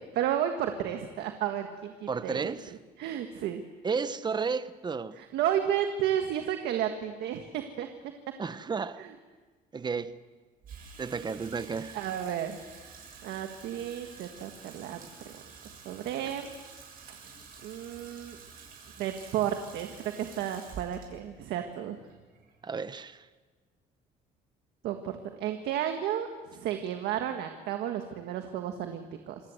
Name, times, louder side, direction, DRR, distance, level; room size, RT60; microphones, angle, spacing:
voice 1, 0.0-2.5 3.0-3.6 5.1-7.9 9.0-9.1 11.9-12.6 13.2-15.0 15.2-15.3 15.7-16.5 17.1-17.2 17.6-18.4 19.0-22.0 24.8-29.4, right 10 dB, 80° right, 1.6 m, -32 dB
voice 2, 2.1-2.7 3.8-5.2 8.4-9.0 9.7-10.1 11.0-12.0 22.6-23.2, right 5 dB, 25° right, 1.0 m, -32 dB
Water tap faucet / Sink (filling or washing), 10.6-23.0, right 5 dB, 60° right, 7.2 m, -49 dB
27.0 x 19.0 x 7.9 m
cardioid pair, 110°, 17 cm